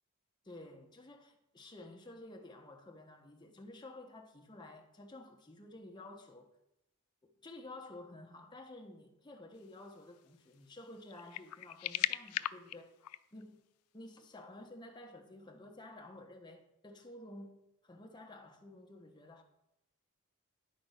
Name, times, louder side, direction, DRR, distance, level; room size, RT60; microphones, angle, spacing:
voice 1, 0.4-6.5 7.2-13.0 13.3-13.6 13.9-19.4, left 2 dB, 20° left, 1.1 m, -52 dB
sound 1, 10.1-10.2 11.0-13.4, left 13 dB, 85° left, 0.3 m, -37 dB
10.5 x 4.3 x 5.7 m
head